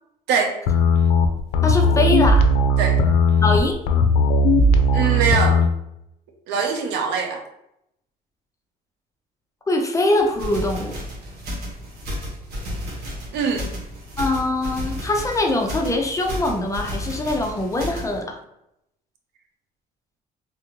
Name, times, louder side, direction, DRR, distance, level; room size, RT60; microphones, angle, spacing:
sound 1, 0.7-5.7, left 1 dB, 85° left, 0.4 m, -17 dB
voice 1, 1.6-2.5 3.4-3.8 9.7-11.0 14.2-18.4, left 2 dB, 20° left, 2 dB, 0.5 m, -22 dB
voice 2, 4.9-5.6 6.5-7.4 13.3-13.7, right 5 dB, 90° right, 3 dB, 0.6 m, -22 dB
sound 2, 10.2-18.2, equal, 70° right, 1.2 m, -32 dB
3.3 x 2.5 x 3.0 m, 0.81 s
cardioid pair, 110°, 17 cm